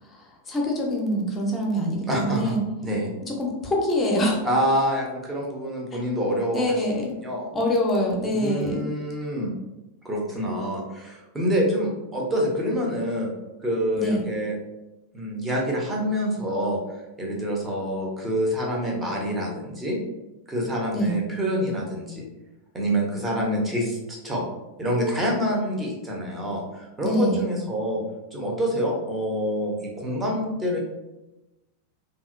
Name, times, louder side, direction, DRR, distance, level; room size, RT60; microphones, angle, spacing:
voice 1, 0.1-2.6 3.3-4.5 6.5-7.2 7.5-8.9 14.0-14.2 20.9-21.2 27.0-27.5, equal, 20° left, 0 dB, 0.7 m, -25 dB
voice 2, 2.1-2.5 2.8-3.1 4.4-6.6 6.9-7.5 8.3-9.5 10.0-13.3 13.6-14.6 15.1-16.8 17.2-20.0 20.5-22.3 22.7-24.4 24.8-28.0 28.3-30.8, equal, 15° right, -2 dB, 0.8 m, -26 dB
2.9 x 2.8 x 2.5 m, 1.0 s
figure-of-eight pair, 90°, 0 cm